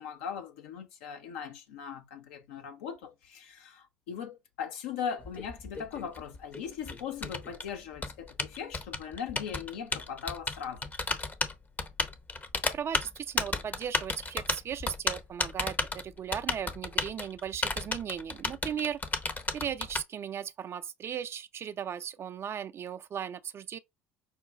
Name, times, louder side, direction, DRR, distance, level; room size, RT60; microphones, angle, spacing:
voice 1, 0.0-10.9, left 7 dB, 75° left, 0.6 m, -39 dB
Typing, 5.2-20.0, left 3 dB, 25° left, 0.7 m, -33 dB
voice 2, 12.7-19.0 19.5-23.8, right 8 dB, 40° right, 0.3 m, -37 dB
5.6 x 2.2 x 2.3 m
hypercardioid pair, 65°, 7 cm